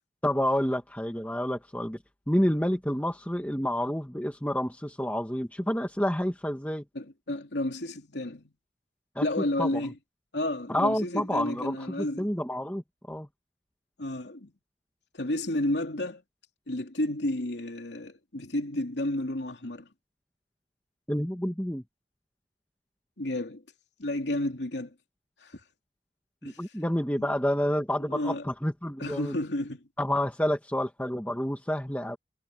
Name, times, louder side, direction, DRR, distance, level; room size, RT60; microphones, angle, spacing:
voice 1, 0.2-2.0 2.3-6.8 9.2-9.3 9.6-9.8 10.7-12.8 13.1-13.3 21.1-21.8 26.4-29.4 30.0-32.2, equal, 10° left, 2.0 m, -29 dB
voice 2, 6.9-8.5 9.2-10.0 10.3-12.3 14.0-14.5 15.1-16.2 16.7-19.9 23.2-23.6 24.0-24.9 25.4-25.6 26.4-26.6 27.2-27.3 28.1-28.4 29.0-29.9, left 1 dB, 85° left, 2.8 m, -31 dB
head